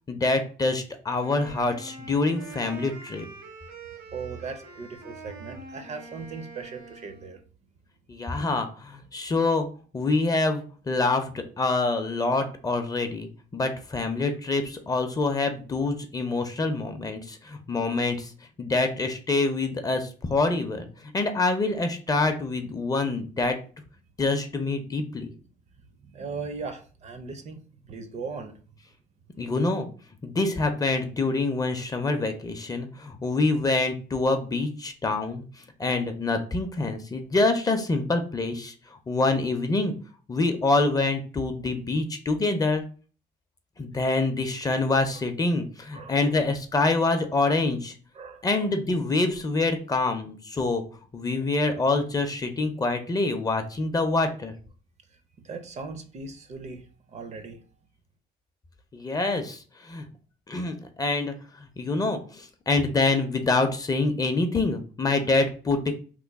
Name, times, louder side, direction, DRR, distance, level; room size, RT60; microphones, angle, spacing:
voice 1, 0.1-3.3 8.1-9.7 9.9-18.3 18.6-23.6 24.2-25.3 29.4-29.9 30.2-35.4 35.8-38.7 39.1-39.9 40.3-42.8 43.8-47.9 48.4-50.8 51.1-54.5 58.9-60.1 60.5-65.9, left 3 dB, 20° left, 6 dB, 0.5 m, -26 dB
Wind instrument woodwind instrument, 1.2-7.4, right 3 dB, 75° right, 1.0 m, -45 dB
voice 2, 4.1-7.4 26.0-28.6 45.9-46.4 48.2-48.7 55.4-57.6, right 4 dB, 40° right, 8 dB, 0.5 m, -38 dB
3.0 x 2.1 x 3.4 m, 0.39 s
cardioid pair, 110°, 17 cm